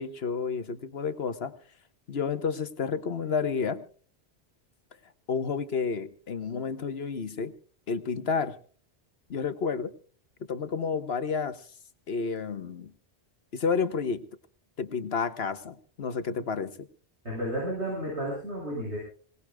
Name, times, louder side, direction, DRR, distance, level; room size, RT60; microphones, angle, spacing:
voice 1, 0.0-1.5 2.1-3.8 5.3-7.5 7.9-8.6 9.3-9.9 10.5-11.6 12.1-12.9 13.5-14.3 14.8-16.9, left 5 dB, 65° left, 11 dB, 1.4 m, -30 dB
voice 2, 17.2-19.0, right 1 dB, 85° right, -5 dB, 8.1 m, -32 dB
26.0 x 18.5 x 2.3 m, 0.42 s
omnidirectional pair, 1.1 m